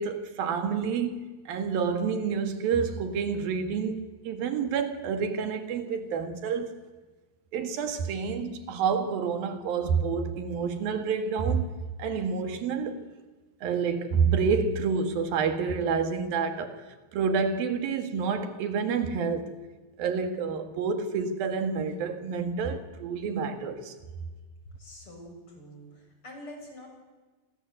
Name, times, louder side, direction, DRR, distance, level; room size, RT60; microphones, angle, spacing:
voice 1, 0.0-6.8 7.5-11.7 12.0-13.1 13.6-16.8 17.1-19.6 20.0-23.9, right 5 dB, 85° right, 3.7 m, -28 dB
voice 2, 24.8-26.9, equal, 35° left, 7.2 m, -46 dB
29.5 x 23.0 x 8.0 m
omnidirectional pair, 4.0 m